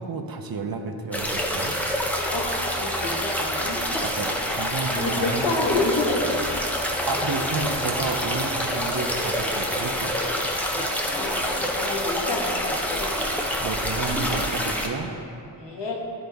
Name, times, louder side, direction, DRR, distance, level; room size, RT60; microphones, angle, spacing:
voice 1, 0.0-1.8 4.0-5.5 7.1-10.2 13.6-15.1, right 4 dB, 55° right, 5 dB, 0.6 m, -31 dB
sound 1, 1.1-14.9, equal, 5° left, 0.7 m, -27 dB
voice 2, 2.3-3.8 4.9-6.5 7.1-7.2 10.7-13.1 15.6-16.0, left 2 dB, 75° left, -2 dB, 1.3 m, -29 dB
11.0 x 4.0 x 3.5 m, 2.5 s
wide cardioid pair, 90°, 43 cm